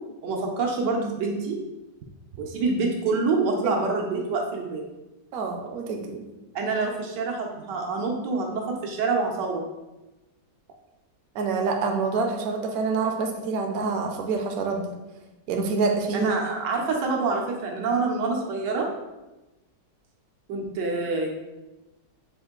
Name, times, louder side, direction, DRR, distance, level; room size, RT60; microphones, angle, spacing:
voice 1, 0.2-1.6 2.4-4.8 6.5-9.6 16.1-18.9 20.5-21.3, right 3 dB, 85° right, 0 dB, 1.4 m, -26 dB
voice 2, 5.3-6.2 11.3-15.0 15.5-16.3, right 4 dB, 70° right, 3 dB, 1.0 m, -26 dB
5.3 x 2.6 x 3.7 m, 1.1 s
omnidirectional pair, 1.8 m